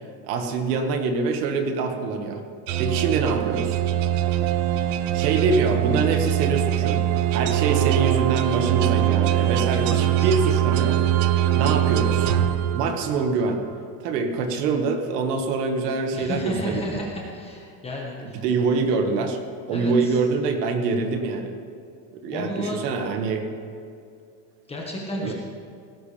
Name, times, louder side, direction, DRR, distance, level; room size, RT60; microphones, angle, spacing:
voice 1, 0.2-2.4 2.8-3.8 5.1-11.0 11.5-12.3 12.7-13.6 14.0-17.1 18.2-19.4 19.7-21.6 22.2-23.5 25.2-25.3, right 4 dB, 75° right, 5 dB, 1.9 m, -25 dB
sound 1, 2.7-13.3, right 11 dB, 45° right, 0.6 m, -22 dB
voice 2, 9.9-10.3 16.1-18.4 19.7-20.2 22.3-22.8 24.7-25.3, left 1 dB, 10° left, -3 dB, 1.6 m, -32 dB
17.5 x 15.5 x 3.5 m, 2.5 s
supercardioid pair, 160°, 48 cm